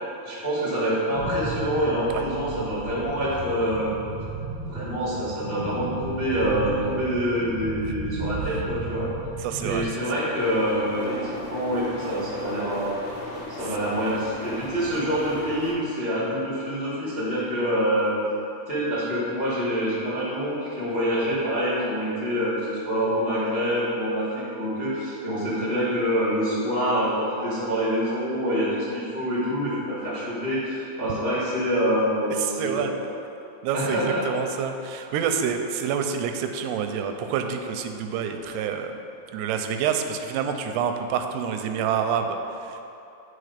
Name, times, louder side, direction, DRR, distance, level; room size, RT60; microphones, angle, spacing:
voice 1, 0.2-4.0 4.7-9.1 9.6-11.2 11.5-13.0 13.5-18.2 18.7-33.0 33.7-34.2, equal, 70° left, -10 dB, 0.5 m, -26 dB
sound 1, 1.1-9.8, right 3 dB, 60° right, 1.4 m, -34 dB
voice 2, 9.4-9.9 10.2-10.3 32.4-32.9 33.6-38.9 39.3-42.8, right 7 dB, 90° right, 6 dB, 2.7 m, -27 dB
sound 2, 10.3-15.7, left 1 dB, 90° left, 3.9 m, -37 dB
10.0 x 4.4 x 5.0 m, 2.8 s
omnidirectional pair, 4.7 m